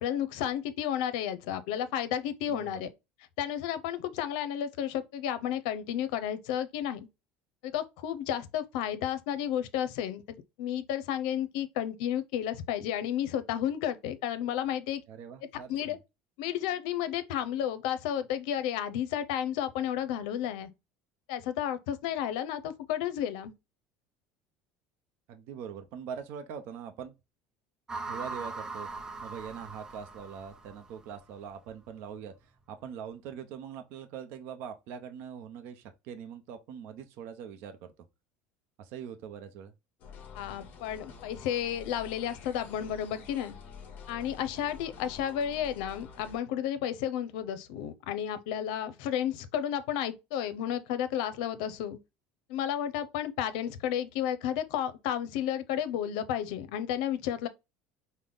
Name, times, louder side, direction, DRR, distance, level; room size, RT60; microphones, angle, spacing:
voice 1, 0.0-2.9 3.4-7.1 7.6-10.2 10.6-15.0 15.7-16.0 16.4-20.7 21.3-23.5 40.3-43.6 44.1-52.0 52.5-57.5, left 10 dB, 85° left, 0.6 m, -32 dB
voice 2, 2.5-2.8 15.1-16.0 25.3-27.1 28.0-37.9 38.8-39.7 44.5-44.6, right 7 dB, 65° right, 0.7 m, -43 dB
sound 1, 27.9-31.2, right 3 dB, 15° right, 0.5 m, -40 dB
sound 2, 40.0-46.4, left 6 dB, 45° left, 1.0 m, -48 dB
5.2 x 2.1 x 3.8 m
cardioid pair, 140°, 4 cm